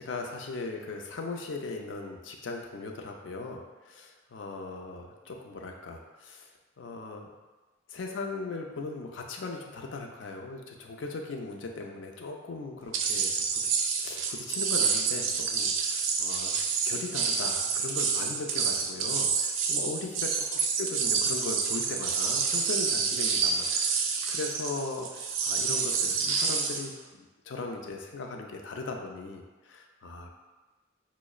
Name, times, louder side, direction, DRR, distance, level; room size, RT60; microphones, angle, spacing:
voice 1, 0.0-6.5 6.8-7.3 7.9-13.7 14.0-30.3, left 3 dB, 65° left, 2 dB, 0.4 m, -38 dB
sound 1, 12.9-26.9, right 5 dB, 70° right, 0.4 m, -28 dB
5.9 x 2.0 x 2.3 m, 1.2 s
head